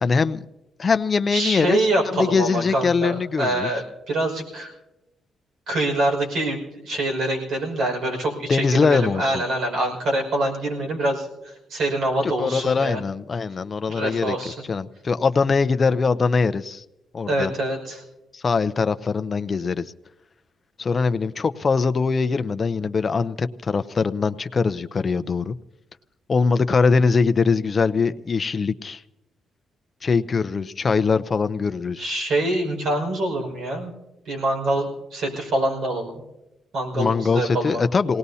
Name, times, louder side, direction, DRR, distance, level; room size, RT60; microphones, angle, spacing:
voice 1, 0.0-0.4 0.8-1.8 2.1-3.7 8.5-9.4 12.2-14.4 14.7-16.8 17.1-17.5 18.3-19.8 20.8-25.6 26.3-29.0 30.0-32.1 36.9-38.2, left 4 dB, 35° left, 11 dB, 0.6 m, -22 dB
voice 2, 1.3-4.7 5.7-13.0 13.9-14.5 17.3-18.0 32.0-33.9 34.3-36.2 36.7-37.8, right 1 dB, 70° right, 1 dB, 5.5 m, -25 dB
27.5 x 18.5 x 2.8 m, 0.95 s
cardioid pair, 115°, 0 cm